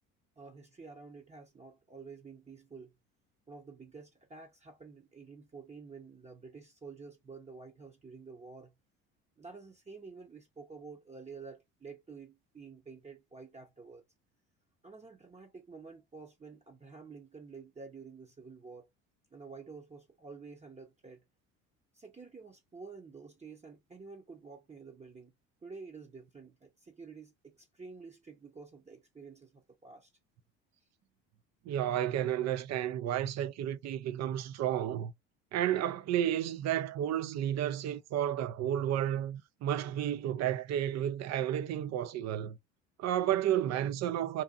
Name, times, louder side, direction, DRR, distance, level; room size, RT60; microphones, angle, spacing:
voice 1, 0.4-2.9 3.5-8.7 9.4-14.0 14.8-18.9 19.3-21.2 21.9-25.3 25.6-30.1, right 4 dB, 20° right, 0.8 m, -50 dB
voice 2, 31.7-35.1 35.5-42.6 43.0-44.4, right 11 dB, 50° right, 0.5 m, -32 dB
2.8 x 2.4 x 2.4 m
supercardioid pair, 80°, 34 cm